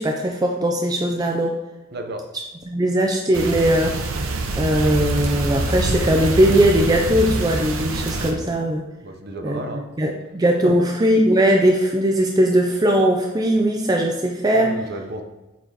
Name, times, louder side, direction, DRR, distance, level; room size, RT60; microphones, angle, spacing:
voice 1, 0.0-1.6 2.7-4.0 4.6-8.9 9.4-14.8, right 1 dB, 20° right, 2 dB, 0.3 m, -19 dB
voice 2, 1.9-2.3 9.0-9.8 10.6-10.9 14.5-15.2, right 1 dB, 50° right, 4 dB, 0.7 m, -32 dB
sound 1, 3.3-8.3, right 2 dB, 85° right, 0.8 m, -25 dB
7.9 x 4.2 x 2.8 m, 1.1 s
head